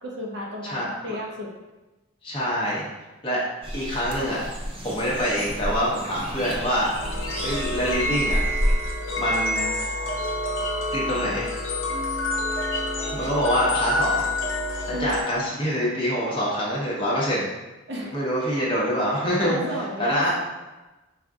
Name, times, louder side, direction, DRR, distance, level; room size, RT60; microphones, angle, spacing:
voice 1, 0.0-1.5 14.9-15.1 15.3-15.6 17.9-18.2 19.4-20.4, equal, 60° right, -2 dB, 0.8 m, -33 dB
voice 2, 0.6-1.1 2.2-2.9 3.2-3.4 3.7-4.4 4.8-6.9 7.4-8.4 9.2-9.7 10.9-11.5 13.1-14.3 14.9-17.5 18.1-19.6 20.0-20.3, equal, 25° left, -6 dB, 1.1 m, -25 dB
sound 1, 3.6-8.8, equal, 25° right, 0.6 m, -30 dB
sound 2, 7.0-15.2, left 1 dB, 70° left, 1.0 m, -28 dB
5.2 x 2.5 x 3.6 m, 1.1 s
head